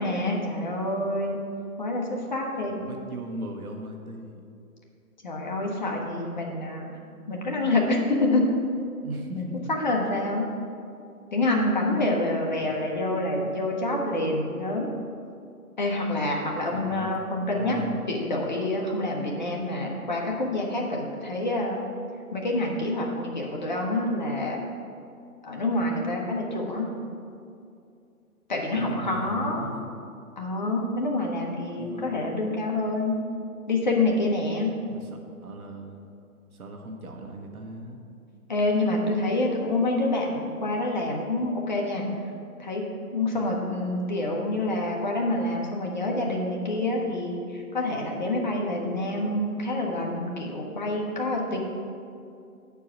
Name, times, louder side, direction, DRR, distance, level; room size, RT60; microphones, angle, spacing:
voice 1, 0.0-1.4 1.8-2.8 5.2-7.0 7.3-8.4 9.3-9.4 9.8-10.4 11.3-14.9 15.8-17.8 18.1-21.8 22.3-24.6 25.4-26.9 28.5-29.7 30.4-33.2 33.7-34.7 38.5-42.1 42.6-42.8 43.1-51.6, left 2 dB, 30° left, -1 dB, 0.9 m, -27 dB
voice 2, 2.7-4.4 9.0-9.4 12.6-13.1 16.7-18.0 28.7-29.9 31.8-32.3 34.9-36.0 36.5-38.0, right 1 dB, 70° right, 3 dB, 1.3 m, -38 dB
7.9 x 4.7 x 7.1 m, 2.5 s
hypercardioid pair, 165°, 45 cm